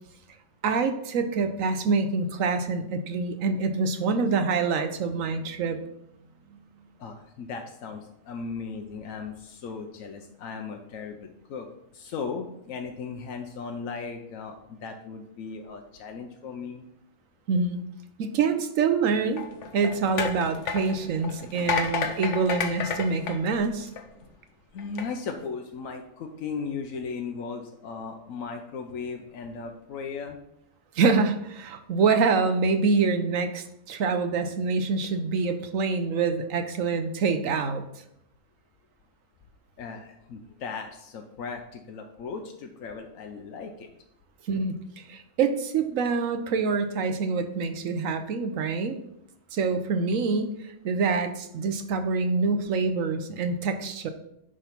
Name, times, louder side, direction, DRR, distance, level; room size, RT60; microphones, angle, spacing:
voice 1, 0.6-5.8 6.5-6.6 17.5-17.8 18.2-19.5 19.7-23.9 30.9-38.0 44.5-49.0 49.5-54.1, right 4 dB, 90° right, 8 dB, 1.2 m, -26 dB
voice 2, 7.0-16.8 24.7-30.4 39.8-43.9, left 5 dB, 90° left, 4 dB, 1.2 m, -37 dB
sound 1, 19.3-24.2 24.8-25.0, left 6 dB, 70° left, 1.2 m, -31 dB
9.7 x 3.8 x 5.8 m, 0.80 s
omnidirectional pair, 1.3 m